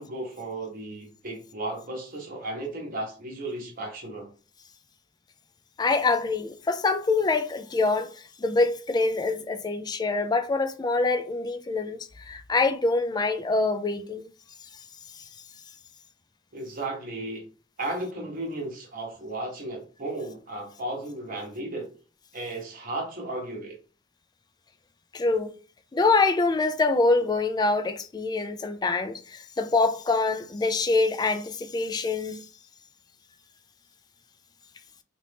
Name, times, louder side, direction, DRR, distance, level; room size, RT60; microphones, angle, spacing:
voice 1, 0.0-4.3 16.5-17.5 17.8-21.9 22.3-23.7, right 2 dB, 50° right, 1.1 m, -34 dB
voice 2, 5.8-8.1 8.4-14.2 25.1-25.5 25.9-32.4, left 3 dB, 20° left, 0.3 m, -25 dB
2.9 x 2.7 x 3.3 m
head